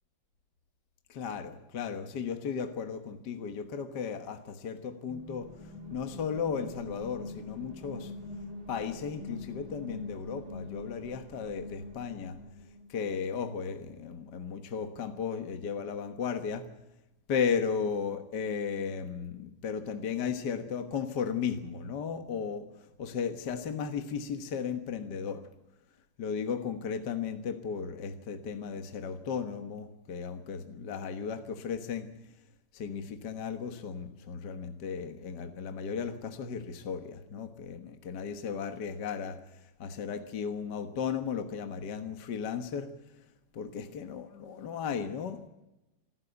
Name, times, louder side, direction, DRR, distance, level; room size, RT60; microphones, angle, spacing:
voice 1, 1.1-5.5 5.9-8.1 8.7-12.4 12.9-16.7 17.3-22.7 23.0-25.4 26.2-32.1 32.7-42.9 43.5-45.5, left 6 dB, 55° left, 7 dB, 1.8 m, -35 dB
sound 1, 5.1-12.9, left 2 dB, 60° right, 4.9 m, -44 dB
26.0 x 14.0 x 8.1 m, 0.97 s
omnidirectional pair, 2.4 m